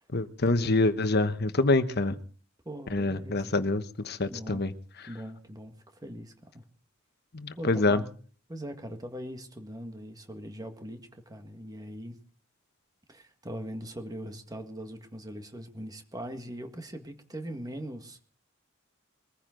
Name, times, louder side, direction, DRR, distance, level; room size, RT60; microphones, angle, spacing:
voice 1, 0.1-2.2 2.9-4.7 7.3-8.0, left 2 dB, 50° left, 10 dB, 1.2 m, -26 dB
voice 2, 2.7-3.5 4.3-4.7 5.0-6.6 7.6-8.1 8.5-12.2 13.1-18.2, equal, 20° right, 6 dB, 1.8 m, -41 dB
22.5 x 15.0 x 3.9 m, 0.43 s
head